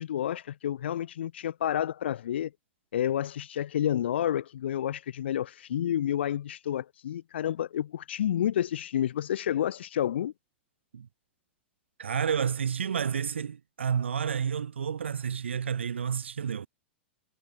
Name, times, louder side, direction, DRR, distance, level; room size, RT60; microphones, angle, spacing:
voice 1, 0.0-2.5 2.9-10.3, left 10 dB, 70° left, 1.7 m, -30 dB
voice 2, 12.0-16.7, right 7 dB, 80° right, 2.8 m, -30 dB
hypercardioid pair, 105°, 6 cm